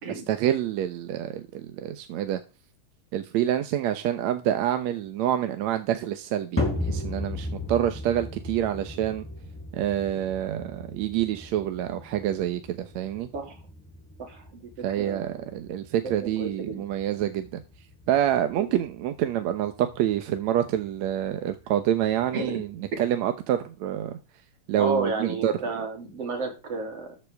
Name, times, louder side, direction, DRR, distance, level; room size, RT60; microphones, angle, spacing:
voice 1, 0.1-2.4 3.1-9.2 9.7-13.3 14.8-17.6 18.1-22.7 23.0-24.2 24.7-25.5, right 11 dB, 75° right, 2.2 m, -27 dB
sound 1, 6.6-23.0, left 1 dB, 5° left, 3.9 m, -37 dB
voice 2, 14.2-14.6 14.9-15.5 16.0-16.8 18.5-18.7 22.3-22.6 24.8-27.2, right 3 dB, 55° right, 4.2 m, -32 dB
13.5 x 10.0 x 3.5 m
omnidirectional pair, 3.3 m